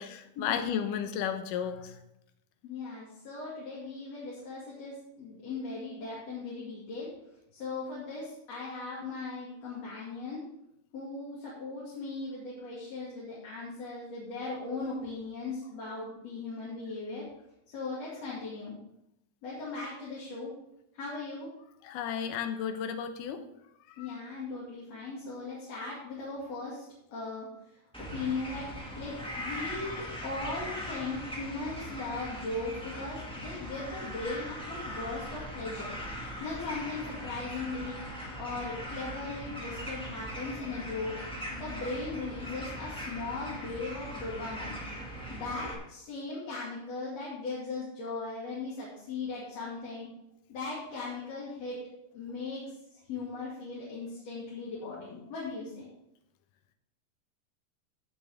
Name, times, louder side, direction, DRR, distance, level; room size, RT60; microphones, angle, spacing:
voice 1, 0.0-2.0 21.8-23.4 23.9-24.2, left 8 dB, 80° left, 8 dB, 2.5 m, -33 dB
voice 2, 2.6-7.1 7.5-10.4 10.9-17.2 17.7-18.7 19.4-20.5 20.9-21.5 24.0-26.8 27.1-27.5 28.0-28.7 28.9-35.9 36.4-38.0 38.4-41.2 41.5-44.8 45.3-50.1 50.5-51.8 52.1-52.6 52.9-55.9, left 3 dB, 55° left, -7 dB, 3.4 m, -38 dB
sound 1, 27.9-45.7, equal, ahead, 1.2 m, -40 dB
16.0 x 7.2 x 3.6 m, 0.82 s
omnidirectional pair, 3.7 m